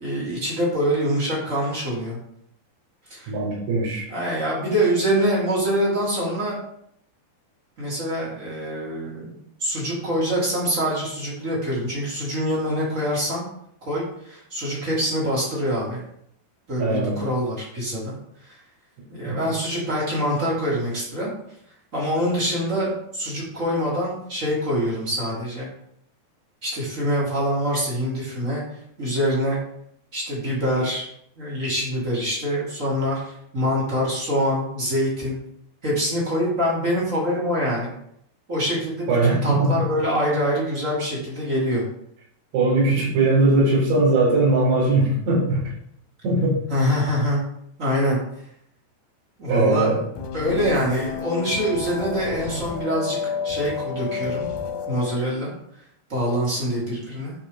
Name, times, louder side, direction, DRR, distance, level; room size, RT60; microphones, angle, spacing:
voice 1, 0.0-2.2 3.1-3.3 4.1-6.6 7.8-13.4 13.8-16.0 16.7-18.2 18.5-18.6 19.1-21.3 21.9-25.7 26.6-28.6 29.0-29.6 30.1-31.1 31.4-33.2 33.5-35.4 35.8-37.9 38.5-41.8 46.7-47.4 47.8-48.2 49.4-50.0 50.3-54.5 54.9-55.5 56.1-57.3, equal, 20° right, -5 dB, 2.6 m, -25 dB
voice 2, 3.3-4.1 16.8-17.2 19.3-19.4 39.1-39.7 42.5-45.6 46.2-46.6 49.5-50.0, right 2 dB, 80° right, -6 dB, 6.0 m, -20 dB
sound 1, 50.2-55.2, left 6 dB, 90° left, 1.7 m, -30 dB
12.0 x 5.3 x 3.4 m, 0.71 s
omnidirectional pair, 4.8 m